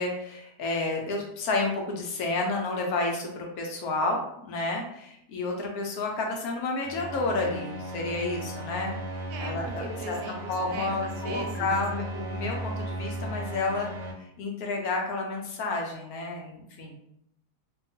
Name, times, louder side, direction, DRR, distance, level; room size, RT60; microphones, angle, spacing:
voice 1, 0.0-10.2 10.5-13.9 14.4-17.0, left 3 dB, 70° left, 1 dB, 1.0 m, -30 dB
sound 1, 6.8-14.1, right 1 dB, 65° right, 0.9 m, -36 dB
voice 2, 9.3-11.7, right 2 dB, 85° right, 2 dB, 1.2 m, -39 dB
2.8 x 2.3 x 2.6 m, 0.77 s
omnidirectional pair, 1.7 m